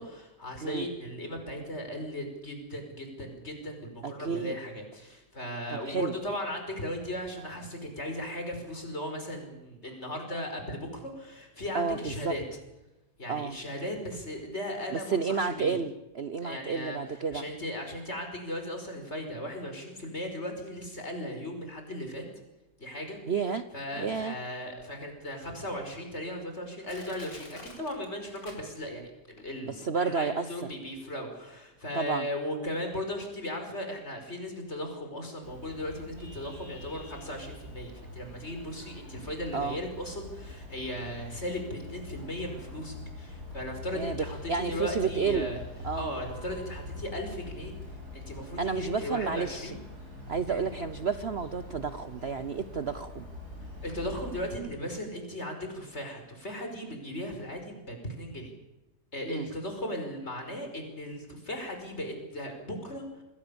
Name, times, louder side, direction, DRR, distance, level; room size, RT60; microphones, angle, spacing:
voice 1, 0.0-12.4 13.2-15.8 16.4-17.0 17.3-22.2 22.8-23.2 23.7-45.6 45.9-47.7 48.1-49.8 50.5-50.6 53.8-58.5 59.1-63.2, left 1 dB, 40° left, 4 dB, 5.5 m, -37 dB
voice 2, 4.0-4.5 5.7-6.1 11.7-12.3 13.3-13.5 14.9-17.4 23.3-23.6 24.0-24.4 29.7-30.7 31.9-32.3 39.5-39.8 43.9-45.5 45.8-46.1 48.6-49.7 50.3-53.3 59.2-59.5, right 5 dB, 45° right, 10 dB, 1.0 m, -31 dB
Crushing, 24.8-24.9 25.5-25.6 26.3-26.4 26.9-29.1 29.4-29.5, left 2 dB, 85° left, 5.2 m, -48 dB
Vehicle horn car horn honking, 35.4-54.5, left 2 dB, 65° right, 7.2 m, -44 dB
27.5 x 20.5 x 7.1 m, 1.0 s
omnidirectional pair, 1.8 m